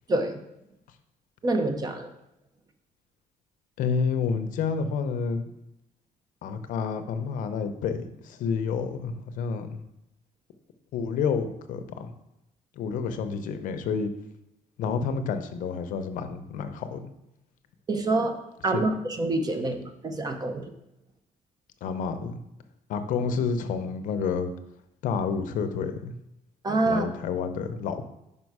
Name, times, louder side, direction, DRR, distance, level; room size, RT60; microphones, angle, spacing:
voice 1, 0.1-0.4 1.4-2.1 17.9-18.4 18.6-20.7 26.6-27.1, right 2 dB, 30° right, 6 dB, 0.7 m, -26 dB
voice 2, 3.8-5.5 6.4-8.0 8.2-9.8 10.9-12.1 12.8-14.1 14.8-17.0 18.7-18.8 21.8-22.4 22.9-24.5 25.0-26.1 26.9-28.1, left 5 dB, 70° left, 9 dB, 0.7 m, -29 dB
5.5 x 5.3 x 4.7 m, 0.87 s
cardioid pair, 130°, 14 cm